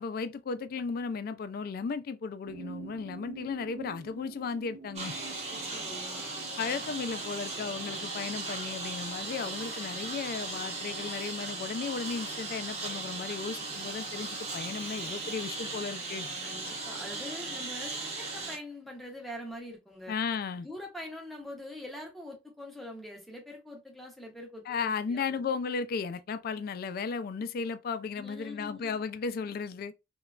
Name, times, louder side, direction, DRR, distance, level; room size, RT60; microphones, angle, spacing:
voice 1, 0.0-5.2 6.6-16.3 20.1-20.7 24.7-29.9, left 5 dB, 55° left, 0.3 m, -35 dB
sound 1, 2.5-7.8, right 6 dB, 65° right, 0.4 m, -48 dB
Engine, 5.0-18.6, right 3 dB, 35° right, 0.8 m, -37 dB
voice 2, 5.7-6.4 16.4-20.1 20.6-25.4 28.2-29.0, left 1 dB, ahead, 0.6 m, -44 dB
3.0 x 2.2 x 2.3 m
head